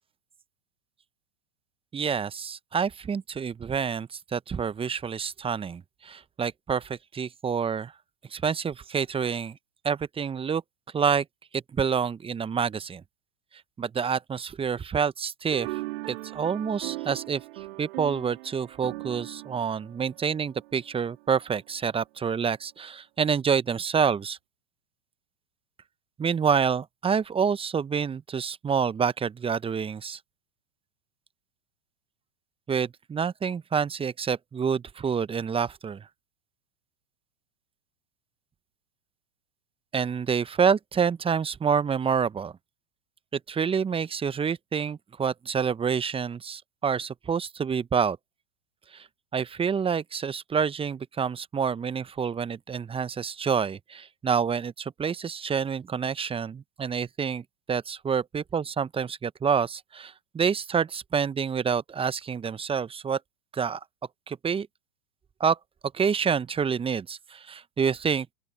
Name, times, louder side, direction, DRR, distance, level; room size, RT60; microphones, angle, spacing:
voice 1, 1.9-7.9 8.3-9.6 9.8-10.6 10.9-11.2 11.5-13.0 13.8-24.4 26.2-30.2 32.7-36.1 39.9-42.5 43.3-48.2 48.9-49.1 49.3-63.2 63.5-63.8 64.3-64.7 65.4-65.6 65.9-68.3, right 6 dB, 15° right, 1.1 m, -28 dB
sound 1, 15.5-21.1, right 20 dB, 55° right, 3.9 m, -39 dB
open air
figure-of-eight pair, 95°, 35 cm